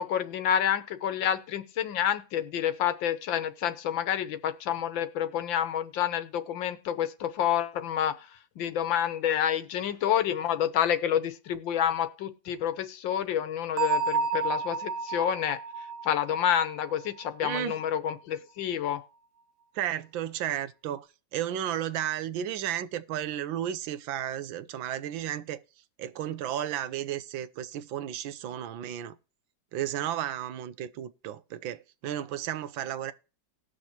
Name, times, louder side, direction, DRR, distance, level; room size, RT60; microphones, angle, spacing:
voice 1, 0.0-8.3 8.6-15.6 16.0-19.0, left 9 dB, 80° left, 1.7 m, -28 dB
Bell, 13.8-17.4, right 4 dB, 65° right, 1.4 m, -31 dB
voice 2, 17.4-17.8 19.7-21.1 21.3-25.6 26.0-29.2 29.7-33.1, right 11 dB, 85° right, 1.5 m, -33 dB
19.0 x 6.3 x 2.9 m
omnidirectional pair, 2.0 m